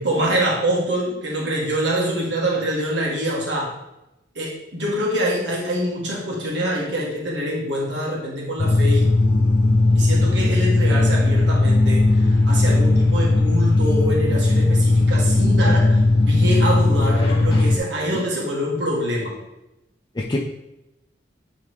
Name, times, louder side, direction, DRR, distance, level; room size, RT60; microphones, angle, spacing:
voice 1, 0.0-3.8 4.4-9.1 10.0-16.0 16.3-19.3, equal, 75° right, -4 dB, 1.7 m, -25 dB
sound 1, 8.6-17.8, left 2 dB, 70° left, 0.9 m, -17 dB
voice 2, 17.0-17.7 20.2-20.4, left 2 dB, 25° left, -3 dB, 0.5 m, -28 dB
9.9 x 3.6 x 3.6 m, 0.93 s
head